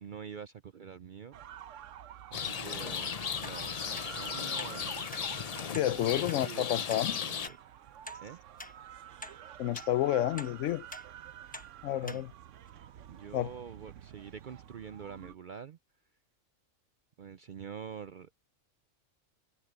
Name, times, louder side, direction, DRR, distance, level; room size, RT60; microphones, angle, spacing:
voice 1, 0.0-1.4 2.3-5.0 5.7-6.9 7.1-7.6 8.2-8.4 12.0-12.2 13.1-15.8 17.2-18.3, right 7 dB, 55° right, 0.5 m, -46 dB
sound 1, 1.3-15.3, right 11 dB, 70° right, 1.0 m, -49 dB
Rain, 2.3-7.5, left 7 dB, 55° left, 0.4 m, -36 dB
sound 2, 3.4-3.6 3.9-4.1 4.6-4.7 5.1-5.2 5.7-5.9 6.3-6.4 6.9-7.0 7.4-7.6 8.1-8.2 8.6-8.7 9.2-9.4 9.7-9.9 10.4-10.5 10.9-11.0 11.5-11.7 12.1-12.2 12.7-12.8, left 1 dB, 5° left, 1.0 m, -45 dB
voice 2, 5.7-7.2 9.6-10.8 11.8-12.3 13.3-13.5, left 13 dB, 75° left, 0.9 m, -30 dB
omnidirectional pair, 1.4 m